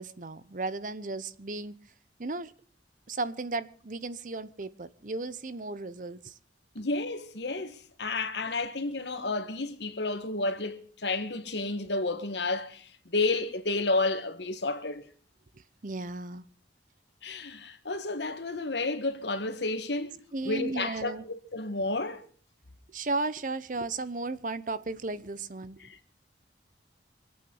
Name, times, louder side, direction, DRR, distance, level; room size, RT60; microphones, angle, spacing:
voice 1, 0.0-1.7 2.2-2.5 3.1-6.3 15.8-16.4 20.3-21.2 22.9-25.8, right 3 dB, 50° right, 0.8 m, -35 dB
voice 2, 6.7-15.0 17.2-20.2 20.4-21.2 21.5-22.2 25.8-26.1, left 2 dB, 80° left, 1.7 m, -31 dB
25.0 x 8.8 x 5.5 m
head